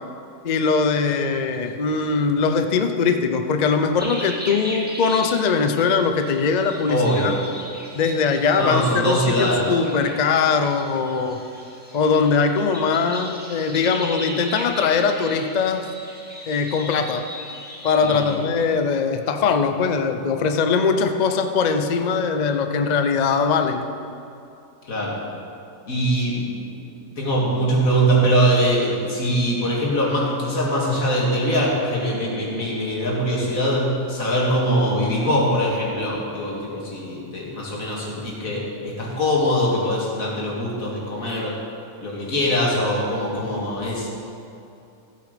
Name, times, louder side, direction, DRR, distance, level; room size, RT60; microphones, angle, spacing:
voice 1, 0.4-7.3 7.9-11.4 11.9-15.9 16.5-17.2 17.8-23.8, left 5 dB, 80° left, 6 dB, 0.3 m, -21 dB
sound 1, 4.0-18.4, equal, 5° right, 1.5 m, -37 dB
voice 2, 6.9-7.4 8.6-9.7 18.0-18.4 24.8-25.2 25.9-26.6 27.2-41.6 42.0-44.1, equal, 55° left, -4 dB, 2.6 m, -22 dB
15.0 x 8.2 x 5.1 m, 2.7 s
omnidirectional pair, 1.7 m